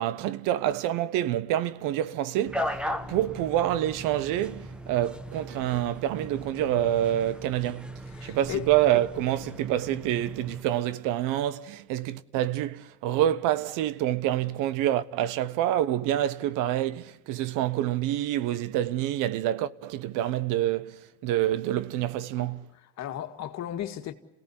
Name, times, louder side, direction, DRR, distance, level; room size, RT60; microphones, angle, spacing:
voice 1, 0.0-2.8 3.1-7.9 8.2-22.7, right 12 dB, 85° right, 1.1 m, -27 dB
sound 1, 2.4-10.6, equal, 5° right, 1.5 m, -38 dB
voice 2, 8.2-8.7 22.4-22.6 23.0-24.1, left 11 dB, 60° left, 2.0 m, -35 dB
28.0 x 17.5 x 9.7 m
cardioid pair, 120°, 31 cm